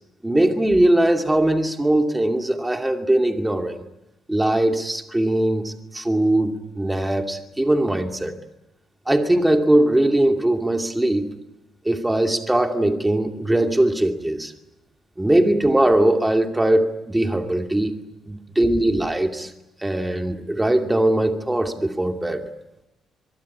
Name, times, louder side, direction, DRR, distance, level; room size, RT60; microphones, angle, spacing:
voice 1, 0.2-3.9 4.3-8.3 9.1-11.3 11.8-14.5 15.2-17.9 18.2-19.5 19.8-22.5, right 1 dB, 10° right, 5 dB, 2.6 m, -20 dB
24.0 x 23.0 x 9.7 m, 0.92 s
cardioid pair, 90°, 0 cm